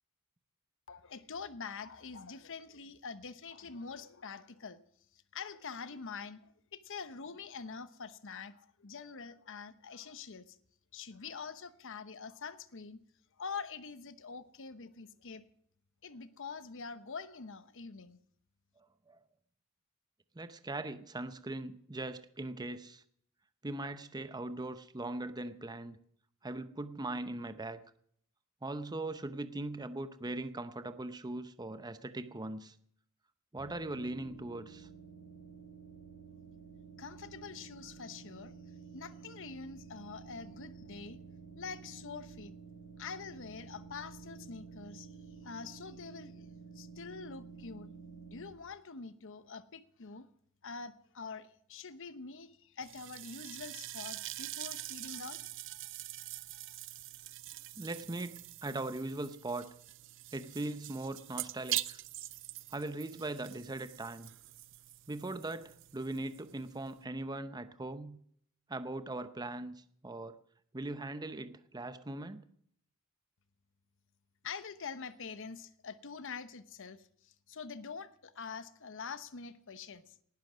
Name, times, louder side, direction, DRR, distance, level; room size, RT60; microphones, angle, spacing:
voice 1, 0.9-4.8 5.3-10.6 10.9-13.0 13.4-15.5 16.0-18.2 37.0-38.5 38.9-41.2 41.6-42.5 43.0-45.1 45.4-46.5 46.7-47.9 48.3-50.3 50.6-55.4 74.4-80.1, left 5 dB, 65° left, 13 dB, 1.0 m, -45 dB
voice 2, 18.8-19.2 20.3-23.0 23.6-26.0 26.4-27.8 28.6-32.7 33.5-34.9 57.8-59.7 60.3-62.0 62.7-64.3 65.1-68.2 68.7-70.4 70.7-72.4, right 2 dB, 20° right, 11 dB, 0.7 m, -40 dB
sound 1, 33.6-48.5, right 5 dB, 80° left, 3.7 m, -51 dB
sound 2, 52.8-67.0, right 14 dB, 60° right, 0.6 m, -44 dB
18.5 x 12.0 x 6.2 m, 0.65 s
head